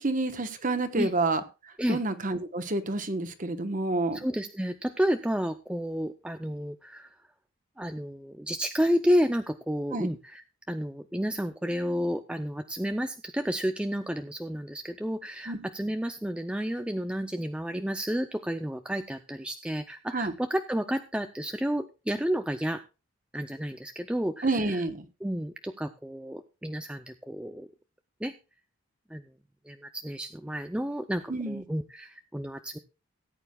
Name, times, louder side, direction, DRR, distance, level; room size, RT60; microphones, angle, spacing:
voice 1, 0.0-1.4 1.9-4.2 9.9-10.1 15.5-15.6 20.1-20.3 24.4-25.0 31.3-31.6, right 2 dB, 40° right, 1.1 m, -28 dB
voice 2, 4.1-7.1 7.8-22.8 23.3-24.8 25.2-27.7 28.2-28.3 29.1-29.2 29.6-32.8, equal, 5° right, 0.4 m, -31 dB
18.0 x 9.1 x 2.3 m
head